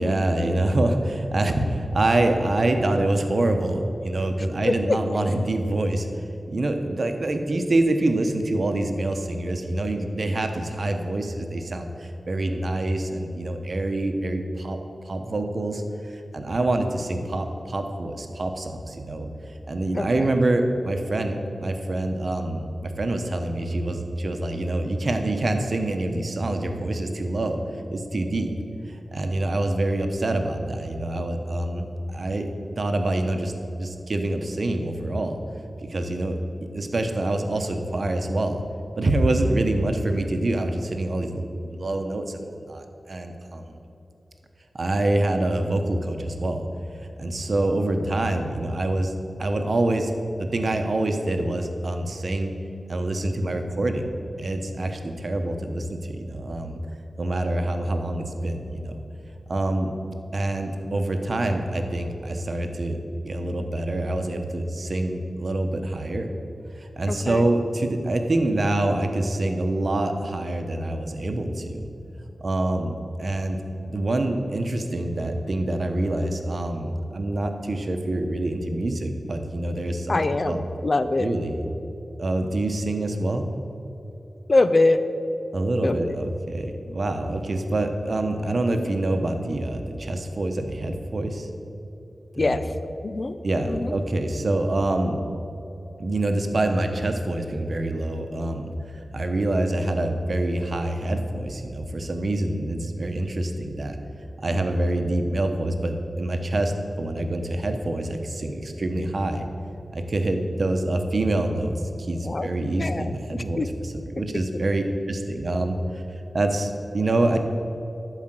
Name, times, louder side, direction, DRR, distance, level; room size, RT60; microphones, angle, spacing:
voice 1, 0.0-6.1 6.5-14.8 15.0-27.6 27.9-28.5 28.9-33.5 33.8-35.4 35.8-36.4 36.7-38.6 39.0-43.8 44.7-46.6 47.2-49.1 49.4-50.1 50.4-52.5 52.9-54.1 54.4-56.8 57.2-59.0 59.5-59.9 60.3-63.0 63.2-66.3 66.8-71.9 72.4-72.9 73.2-73.6 73.9-80.2 80.5-80.6 81.2-81.6 82.2-83.4 85.5-91.5 92.4-92.6 93.4-95.2 96.0-98.7 99.1-104.0 104.4-109.5 109.9-117.4, right 1 dB, 60° right, 5 dB, 1.0 m, -26 dB
voice 2, 4.6-5.0 19.9-20.3 67.1-67.5 80.1-81.3 84.5-85.0 85.8-86.2 86.9-87.0 92.4-92.6 93.0-93.4 93.7-94.0 112.2-113.0 113.3-113.7, left 2 dB, 45° left, 11 dB, 0.5 m, -24 dB
11.5 x 5.0 x 7.6 m, 2.9 s
wide cardioid pair, 75°, 0 cm